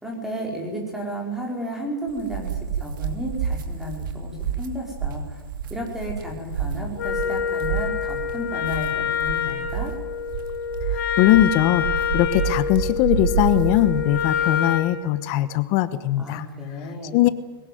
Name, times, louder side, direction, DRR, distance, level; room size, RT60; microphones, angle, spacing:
voice 1, 0.0-2.5 2.8-5.4 5.7-10.0 16.2-17.2, equal, 5° right, 0 dB, 4.7 m, -33 dB
sound 1, 2.1-14.4, right 7 dB, 65° right, 3.0 m, -29 dB
Wind instrument woodwind instrument, 7.0-14.9, left 7 dB, 60° left, 4.5 m, -26 dB
voice 2, 11.2-11.9 12.1-16.4 17.1-17.3, left 14 dB, 30° left, 15 dB, 1.1 m, -20 dB
22.0 x 19.0 x 9.4 m, 1.3 s
hypercardioid pair, 160°, 12 cm